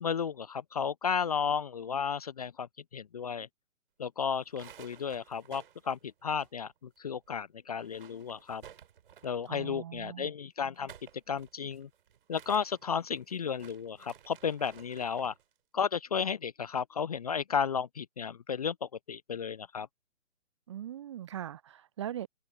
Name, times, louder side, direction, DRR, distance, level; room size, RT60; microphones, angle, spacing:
voice 1, 0.0-2.7 2.9-3.5 4.0-8.6 9.2-10.9 11.3-11.9 12.3-15.3 15.7-19.9, left 6 dB, 30° left, 0.7 m, -33 dB
sound 1, 4.4-7.0 7.2-7.3 7.7-9.5 10.6-15.4, right 9 dB, 40° right, 4.8 m, -55 dB
voice 2, 9.5-10.3 20.7-22.3, right 11 dB, 20° right, 0.8 m, -40 dB
figure-of-eight pair, 135°, 40 cm